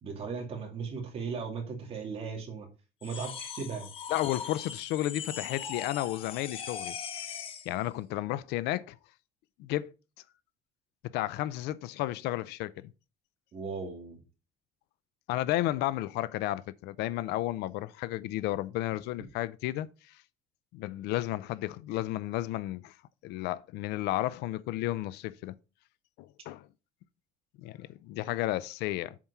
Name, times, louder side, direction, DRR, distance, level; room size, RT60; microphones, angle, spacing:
voice 1, 0.0-2.7 3.0-3.9 13.5-14.2, right 5 dB, 35° right, 2.4 m, -37 dB
sound 1, 3.0-7.7, left 8 dB, 30° left, 0.7 m, -40 dB
voice 2, 4.1-7.0 7.7-9.0 9.6-9.9 11.1-12.9 15.3-20.2 20.7-22.9 23.2-25.5 26.2-26.7 27.6-29.2, left 15 dB, 70° left, 0.5 m, -32 dB
7.3 x 4.6 x 5.6 m
cardioid pair, 175°, 18 cm